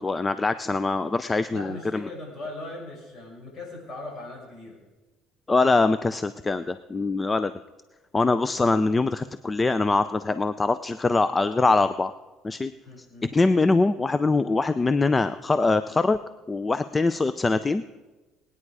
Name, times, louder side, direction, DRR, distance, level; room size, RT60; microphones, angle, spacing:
voice 1, 0.0-2.0 5.5-7.5 8.1-12.1 12.4-12.7 13.2-16.2 16.5-17.8, left 3 dB, 20° left, 13 dB, 0.4 m, -23 dB
voice 2, 1.5-4.8 12.7-13.3, left 2 dB, 45° left, -1 dB, 5.7 m, -39 dB
19.5 x 9.8 x 4.8 m, 1.2 s
cardioid pair, 110°, 0 cm